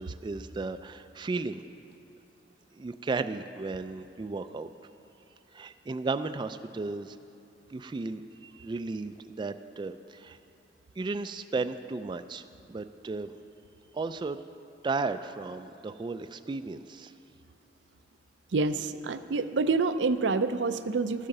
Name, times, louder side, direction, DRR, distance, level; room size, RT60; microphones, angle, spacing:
voice 1, 0.0-1.6 2.7-4.7 5.5-7.2 7.7-10.4 11.0-13.4 13.9-14.4 14.8-17.1, right 3 dB, 25° right, 10 dB, 0.3 m, -34 dB
voice 2, 18.5-21.3, right 4 dB, 85° right, 10 dB, 0.5 m, -27 dB
14.0 x 8.6 x 6.6 m, 2.7 s
head